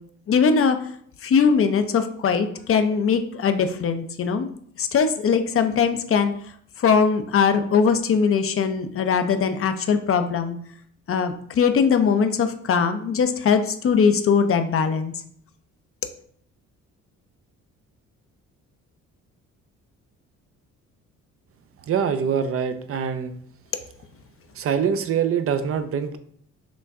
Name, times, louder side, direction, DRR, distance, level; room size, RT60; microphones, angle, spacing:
voice 1, 0.3-0.8 1.2-4.5 4.8-6.3 6.8-10.6 11.1-15.1, left 6 dB, 45° left, 8 dB, 0.6 m, -21 dB
voice 2, 21.9-23.3 24.6-26.2, right 7 dB, 50° right, 9 dB, 0.5 m, -24 dB
6.1 x 2.2 x 3.5 m, 0.62 s
cardioid pair, 90°, 30 cm